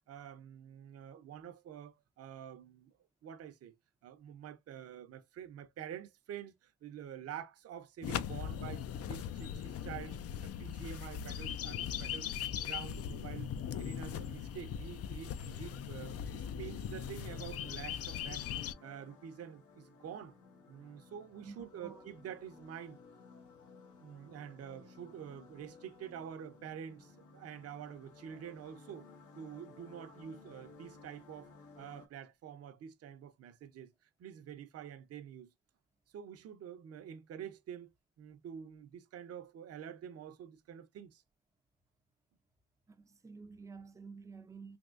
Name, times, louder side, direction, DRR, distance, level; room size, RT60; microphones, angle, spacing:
voice 1, 0.1-2.9 3.2-3.7 4.0-12.3 12.7-18.5 18.8-20.4 20.7-23.0 24.0-29.1 29.4-35.5 36.1-37.9 38.2-41.2, right 9 dB, 55° right, 0.6 m, -47 dB
sound 1, 8.0-18.7, left 9 dB, 55° left, 0.5 m, -40 dB
sound 2, 17.2-32.1, left 4 dB, 80° left, 1.2 m, -58 dB
voice 2, 21.4-22.1 42.9-44.8, right 4 dB, 10° right, 0.4 m, -51 dB
3.5 x 2.7 x 2.5 m
cardioid pair, 90°, 30 cm